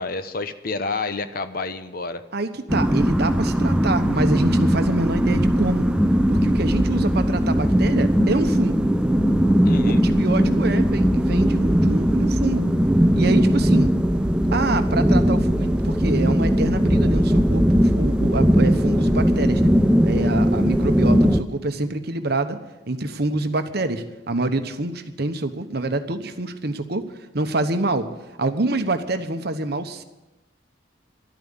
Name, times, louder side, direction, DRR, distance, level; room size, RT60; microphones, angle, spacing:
voice 1, 0.0-2.2 9.6-10.0, left 3 dB, 50° left, 10 dB, 0.9 m, -29 dB
voice 2, 2.3-5.9 6.3-8.8 9.8-12.7 13.1-13.9 14.5-19.7 20.0-22.6 22.9-27.0 27.3-28.1 28.4-30.0, right 2 dB, 55° right, 9 dB, 1.1 m, -26 dB
sound 1, 2.7-21.4, equal, 5° right, 0.5 m, -19 dB
12.0 x 9.0 x 9.8 m, 1.0 s
head